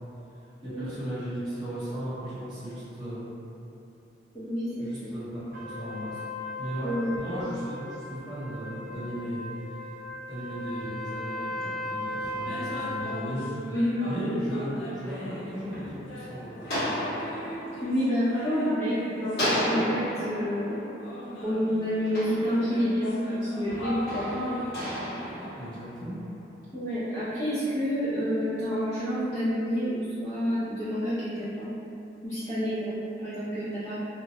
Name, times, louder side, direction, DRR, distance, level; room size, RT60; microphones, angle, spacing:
voice 1, 0.3-3.2 4.8-6.2 6.6-13.7 14.0-16.8 25.6-26.2, equal, 25° right, -13 dB, 0.9 m, -36 dB
voice 2, 4.3-5.1 6.8-7.1 13.1-13.2 13.7-14.1 17.8-20.8 21.4-24.6 26.7-31.7 32.2-34.0, equal, 15° left, -13 dB, 0.3 m, -29 dB
Trumpet, 5.5-13.4, left 1 dB, 50° right, 0.5 m, -37 dB
sound 1, 12.3-14.2 14.5-20.4 21.0-25.5, equal, 85° left, 0.6 m, -40 dB
sound 2, 15.4-18.9 19.3-23.1 23.7-26.3, equal, 55° left, 1.0 m, -34 dB
2.3 x 2.0 x 2.6 m, 2.7 s
head